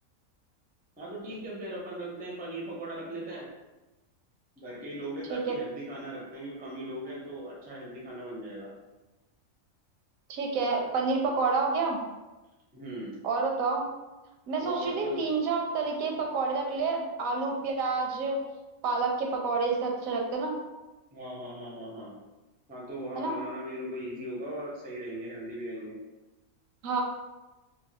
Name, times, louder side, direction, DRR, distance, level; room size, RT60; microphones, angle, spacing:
voice 1, 1.0-3.5 4.6-8.7 12.7-13.2 14.6-15.3 21.1-22.1 22.7-26.0, right 1 dB, 15° right, -4 dB, 0.3 m, -39 dB
voice 2, 10.3-12.0 13.2-13.8 14.5-18.4 18.8-20.6 23.2-23.4 26.8-27.0, right 4 dB, 80° right, 1 dB, 1.0 m, -28 dB
3.0 x 2.3 x 2.9 m, 1.1 s
omnidirectional pair, 1.5 m